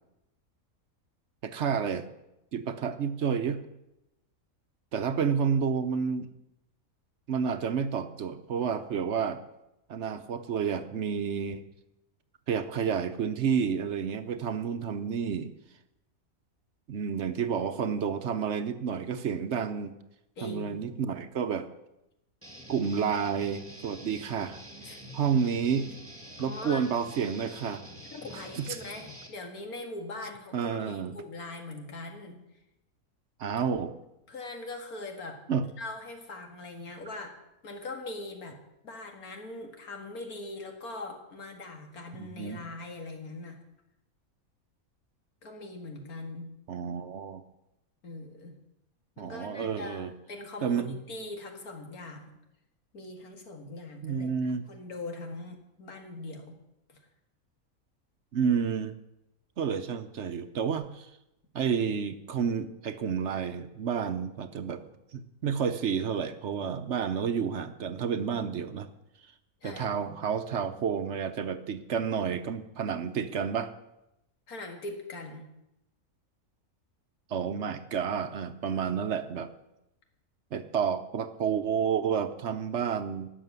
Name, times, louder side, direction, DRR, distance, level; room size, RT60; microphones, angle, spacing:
voice 1, 1.4-2.1 2.5-3.6 4.9-6.3 7.3-9.4 9.9-11.6 12.5-15.5 16.9-19.9 20.4-21.7 22.7-24.6 25.1-25.9 26.4-27.8 28.5-28.7 30.5-31.2 33.4-33.9 35.5-35.7 42.2-42.6 46.7-47.4 49.2-50.1 50.6-51.0 54.0-54.6 58.3-59.0 59.6-61.1 61.5-68.9 69.6-73.7 77.3-79.5 80.5-83.3, right 7 dB, 60° right, 10 dB, 0.9 m, -30 dB
voice 2, 20.4-20.8 24.8-25.0 26.4-26.8 28.1-32.4 34.3-35.4 35.8-37.3 37.6-38.6 38.8-43.6 45.4-46.5 48.0-48.6 49.2-52.3 52.9-54.3 54.7-56.5 56.9-57.0 69.6-69.9 74.5-75.4, left 2 dB, 85° left, 4 dB, 2.3 m, -41 dB
Guitar, 22.4-29.3, equal, 10° right, 2.0 m, -47 dB
12.5 x 6.6 x 9.4 m, 0.89 s
omnidirectional pair, 1.5 m